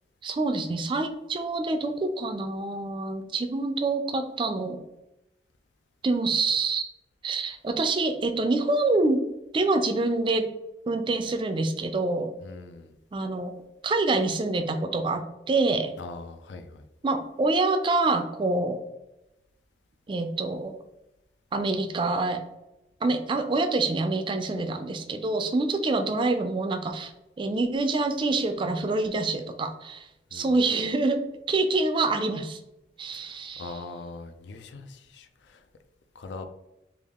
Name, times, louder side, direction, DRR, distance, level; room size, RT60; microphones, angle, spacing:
voice 1, 0.2-4.8 6.0-6.9 7.2-9.2 9.5-10.5 10.9-12.3 13.1-13.5 13.8-15.9 17.0-18.8 20.1-20.7 21.5-22.4 23.0-27.1 27.4-31.2 31.5-32.6 33.0-33.7, right 3 dB, 30° right, 7 dB, 0.3 m, -26 dB
voice 2, 12.4-12.9 16.0-16.8 30.3-30.6 33.1-33.3 33.6-35.6 36.1-36.4, left 3 dB, 80° left, 8 dB, 0.4 m, -41 dB
3.4 x 2.4 x 3.5 m, 0.91 s
head